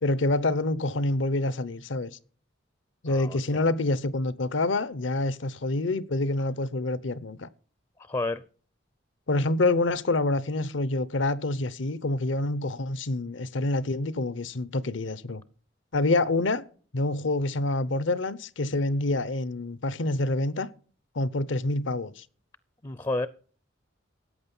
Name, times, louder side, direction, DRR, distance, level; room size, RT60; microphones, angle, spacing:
voice 1, 0.0-2.1 3.0-7.5 9.3-15.4 15.9-16.6 16.9-20.7 21.1-22.2, left 2 dB, 75° left, 0.8 m, -27 dB
voice 2, 3.1-3.6 8.0-8.4 22.8-23.3, left 2 dB, 20° left, 0.5 m, -31 dB
14.0 x 8.9 x 5.5 m
head